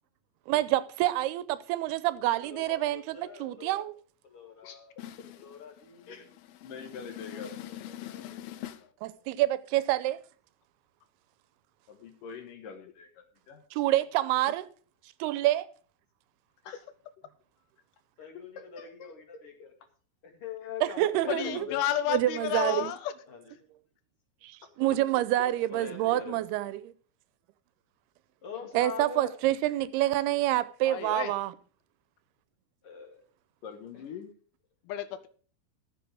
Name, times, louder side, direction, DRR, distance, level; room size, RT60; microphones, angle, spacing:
voice 1, 0.5-3.9 9.0-10.2 13.7-14.7 15.2-15.7 20.8-21.7 22.1-22.9 24.4-26.9 28.7-31.5, right 15 dB, 85° right, 2.7 m, -27 dB
voice 2, 2.4-3.9 4.2-4.9 5.3-6.3 7.3-7.8 8.0-8.7 18.2-19.7 20.2-21.8 23.3-23.4 25.7-26.4 28.4-29.3 32.8-33.2 33.9-34.0, left 6 dB, 40° left, 2.9 m, -43 dB
voice 3, 5.0-5.4 6.9-8.8 21.3-23.1 30.9-31.3 34.9-35.3, left 11 dB, 80° left, 2.6 m, -33 dB
voice 4, 6.6-7.5 7.8-8.2 11.9-13.6 16.6-16.8 18.6-19.1 25.4-25.5 33.6-34.3, left 6 dB, 65° left, 2.7 m, -45 dB
14.0 x 7.5 x 4.9 m
omnidirectional pair, 4.5 m